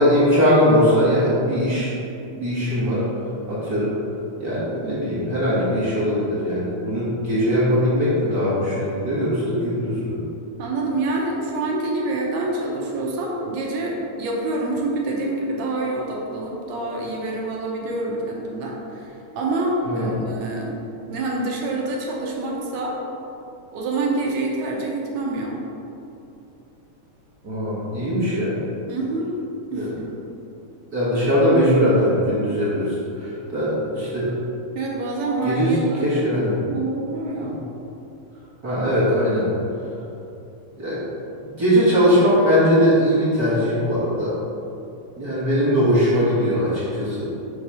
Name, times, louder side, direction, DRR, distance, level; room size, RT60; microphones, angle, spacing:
voice 1, 0.0-1.9 2.4-3.1 3.5-3.9 4.4-10.2 19.9-20.1 27.4-28.6 29.7-29.9 30.9-34.3 35.4-36.6 37.4-37.5 38.6-39.5 40.8-41.0 41.6-44.3 45.2-47.3, equal, 45° right, -9 dB, 1.3 m, -20 dB
voice 2, 10.6-20.7 21.1-23.0 23.7-25.6 28.9-29.3 29.7-30.1 34.8-36.1 36.5-37.6, right 2 dB, 75° right, -2 dB, 1.9 m, -27 dB
6.1 x 3.2 x 5.4 m, 2.8 s
omnidirectional pair, 3.3 m